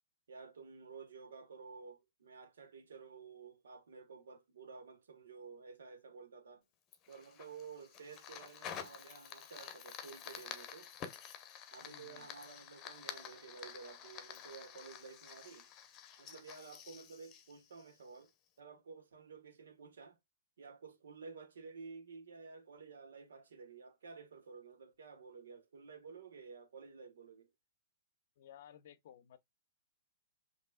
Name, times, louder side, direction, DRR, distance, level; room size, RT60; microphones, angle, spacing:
voice 1, 0.3-6.6 7.1-10.9 11.7-15.7 16.2-18.3 18.6-20.2 20.6-27.5, right 5 dB, 75° right, 1.2 m, -52 dB
Fire, 6.9-18.3, left 8 dB, 30° left, 0.9 m, -50 dB
voice 2, 11.8-12.3 28.4-29.4, left 10 dB, 60° left, 0.6 m, -57 dB
5.3 x 3.0 x 2.2 m
hypercardioid pair, 125°, 0 cm